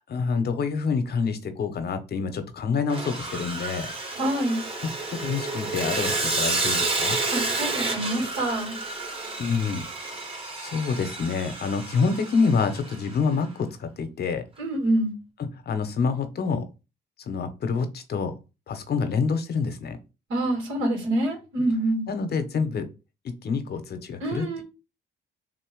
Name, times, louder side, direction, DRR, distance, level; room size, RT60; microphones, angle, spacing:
voice 1, 0.1-3.9 4.8-7.2 9.4-10.3 10.6-14.4 15.4-16.7 17.3-18.3 18.7-20.0 22.1-22.8 23.4-24.6, left 5 dB, 55° left, 0.9 m, -27 dB
Sawing, 2.9-13.1, right 3 dB, 30° right, 1.4 m, -30 dB
voice 2, 4.2-4.6 7.3-8.8 14.6-15.1 20.3-22.1 24.2-24.6, right 1 dB, 80° right, 2.8 m, -26 dB
3.8 x 2.9 x 4.6 m
cardioid pair, 90°, 20 cm